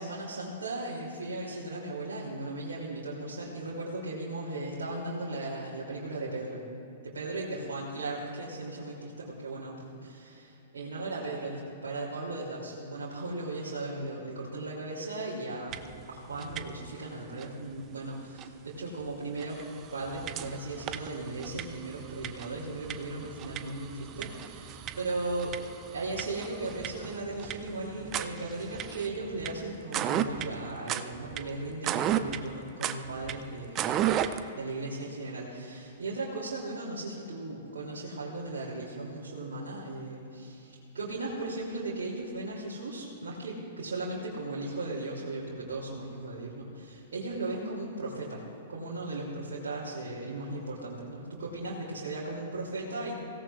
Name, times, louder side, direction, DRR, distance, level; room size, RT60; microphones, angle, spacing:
voice 1, 0.0-6.6 7.0-15.8 16.1-19.6 19.9-25.6 25.9-34.0 34.6-53.2, right 2 dB, 70° right, -7 dB, 3.0 m, -37 dB
sound 1, 15.7-16.0 16.3-17.0 17.4-17.5 18.4-18.5 19.0-19.1 19.4-34.5, right 10 dB, 30° right, 0.6 m, -35 dB
23.5 x 17.0 x 2.5 m, 2.8 s
figure-of-eight pair, 110°, 0 cm